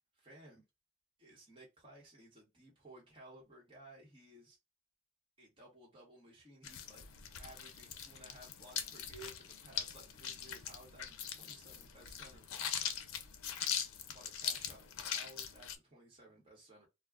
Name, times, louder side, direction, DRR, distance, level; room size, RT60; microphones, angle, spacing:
voice 1, 0.1-0.6 1.2-4.6 5.4-7.0 7.4-12.5 14.1-16.9, right 1 dB, 25° right, 1.0 m, -57 dB
sound 1, 6.6-15.8, left 8 dB, 85° left, 0.5 m, -42 dB
2.3 x 2.1 x 3.4 m
head